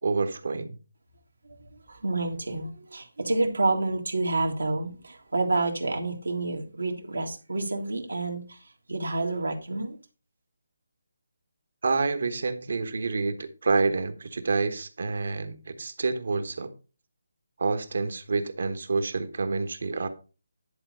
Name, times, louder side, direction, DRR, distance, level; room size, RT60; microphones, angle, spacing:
voice 1, 0.0-0.8 11.8-16.7 17.6-20.1, right 4 dB, 65° right, 1.3 m, -28 dB
voice 2, 1.5-10.0, right 2 dB, 85° right, 1.7 m, -29 dB
10.5 x 4.0 x 5.1 m
figure-of-eight pair, 155°, 0 cm